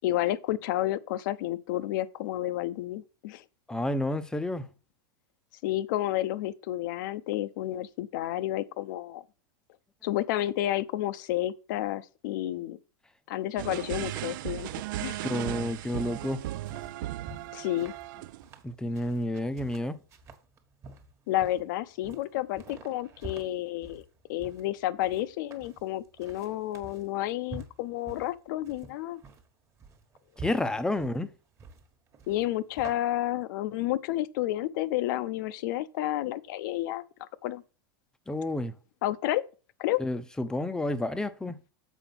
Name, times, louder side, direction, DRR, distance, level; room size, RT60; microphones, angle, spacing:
voice 1, 0.0-3.4 5.6-9.2 10.0-12.8 13.3-14.7 15.0-15.2 17.5-17.9 21.3-29.2 32.3-37.6 39.0-39.4 39.8-40.0, left 14 dB, 60° left, 0.6 m, -31 dB
voice 2, 3.7-4.7 15.2-16.5 18.6-20.0 30.4-31.3 38.3-38.7 40.0-41.6, left 1 dB, 5° left, 0.6 m, -30 dB
sound 1, 13.6-18.5, right 15 dB, 65° right, 0.4 m, -36 dB
sound 2, 16.2-32.9, right 2 dB, 25° right, 1.3 m, -48 dB
7.1 x 4.9 x 5.9 m
supercardioid pair, 140°, 12 cm